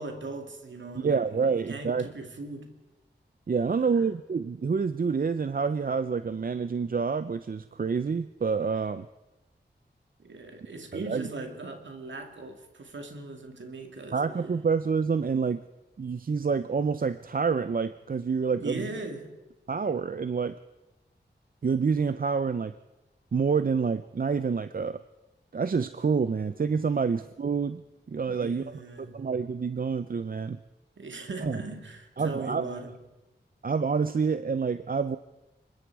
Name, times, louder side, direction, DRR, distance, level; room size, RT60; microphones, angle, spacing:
voice 1, 0.0-2.7 3.8-4.1 10.2-14.2 18.5-19.4 27.0-27.1 28.2-29.2 31.0-33.0, right 3 dB, 90° right, 5 dB, 2.3 m, -39 dB
voice 2, 1.0-2.1 3.5-9.1 10.9-11.3 14.1-15.6 16.0-18.8 19.7-20.6 21.6-22.7 23.3-25.0 25.5-27.8 28.1-28.6 29.0-30.6 31.4-31.6 32.2-32.6 33.6-35.2, right 5 dB, 50° right, 12 dB, 0.6 m, -27 dB
25.0 x 22.0 x 4.8 m, 1.0 s
wide cardioid pair, 75°, 19 cm